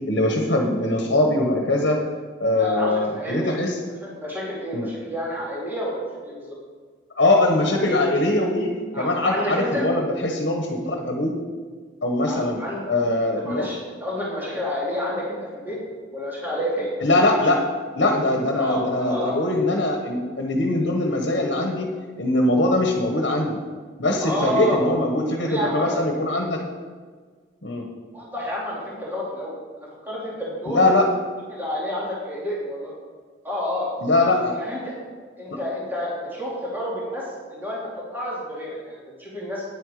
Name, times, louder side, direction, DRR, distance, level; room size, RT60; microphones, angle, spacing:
voice 1, 0.1-2.0 2.4-3.8 4.7-4.9 7.2-8.7 9.0-11.3 12.0-12.6 12.9-13.7 17.0-17.6 18.0-21.9 22.2-23.6 24.0-26.6 27.6-27.8 30.7-31.1 34.0-34.6 35.5-35.6, left 2 dB, 65° left, 1 dB, 1.4 m, -22 dB
voice 2, 2.6-3.6 4.0-6.6 8.9-9.9 12.3-12.8 13.2-15.8 16.1-16.9 18.6-19.4 24.2-24.9 25.4-26.1 28.1-30.9 31.5-32.9 33.4-33.9 34.5-34.9 35.4-37.8 38.1-39.6, left 1 dB, 10° right, -6 dB, 2.6 m, -29 dB
10.0 x 9.0 x 5.0 m, 1.5 s
head